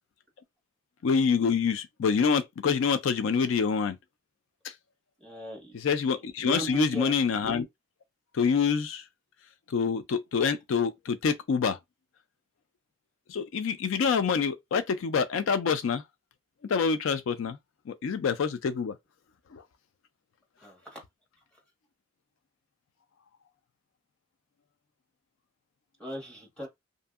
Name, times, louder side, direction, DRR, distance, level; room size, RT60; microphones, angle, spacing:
voice 1, 1.0-4.0 5.7-7.7 8.3-9.0 9.7-11.8 13.3-16.0 16.6-17.6 17.9-18.9 19.5-19.6, left 6 dB, 85° left, 0.4 m, -26 dB
voice 2, 5.2-5.8 6.4-7.1 20.6-21.0 26.0-26.7, right 1 dB, 5° left, 1.1 m, -38 dB
2.6 x 2.6 x 2.4 m
head